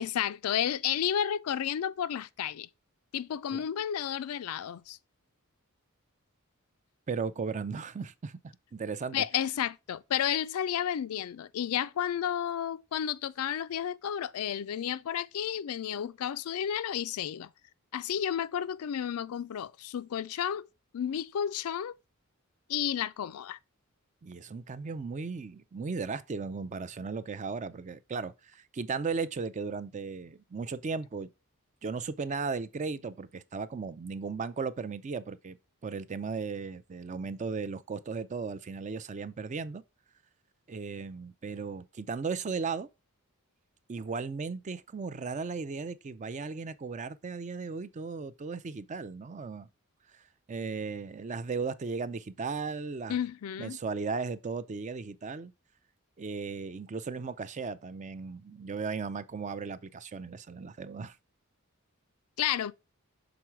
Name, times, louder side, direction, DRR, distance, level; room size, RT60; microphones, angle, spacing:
voice 1, 0.0-2.7 3.1-5.0 9.1-17.5 17.9-20.7 20.9-21.9 22.7-23.6 53.1-53.8 62.4-62.7, left 9 dB, 80° left, 0.4 m, -32 dB
voice 2, 7.1-9.2 24.2-31.3 31.8-35.6 35.8-39.8 40.7-42.9 43.9-49.7 50.5-53.2 53.6-55.5 56.2-61.2, right 4 dB, 35° right, 0.4 m, -36 dB
6.0 x 3.8 x 4.5 m
head